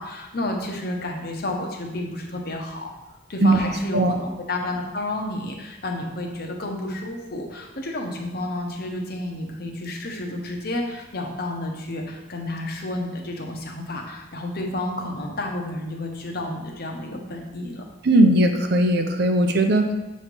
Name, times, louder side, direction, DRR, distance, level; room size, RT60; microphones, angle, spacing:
voice 1, 0.0-2.9 3.3-17.8, left 1 dB, 50° left, 1 dB, 0.9 m, -31 dB
voice 2, 18.0-19.9, right 1 dB, 55° right, 5 dB, 0.6 m, -18 dB
7.0 x 3.2 x 5.3 m, 1.0 s
head